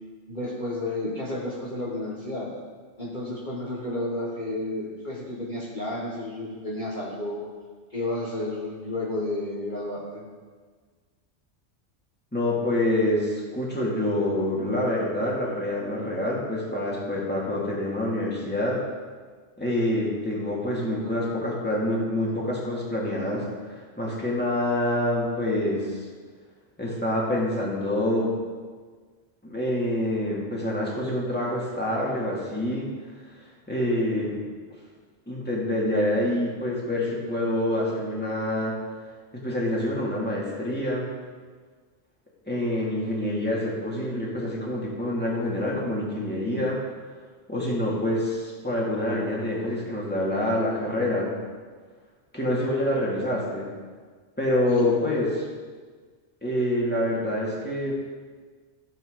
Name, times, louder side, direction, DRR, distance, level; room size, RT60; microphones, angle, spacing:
voice 1, 0.3-2.5 3.0-7.5 7.9-10.2 54.7-54.9, left 1 dB, 40° left, -5 dB, 1.7 m, -31 dB
voice 2, 12.3-18.8 19.6-26.1 26.8-28.4 29.4-32.9 33.7-34.4 35.3-38.7 39.3-41.1 42.5-46.8 47.5-51.3 52.3-53.7 54.4-55.4 56.4-58.0, left 1 dB, 10° left, -5 dB, 2.4 m, -26 dB
15.5 x 7.7 x 3.9 m, 1.5 s
omnidirectional pair, 1.2 m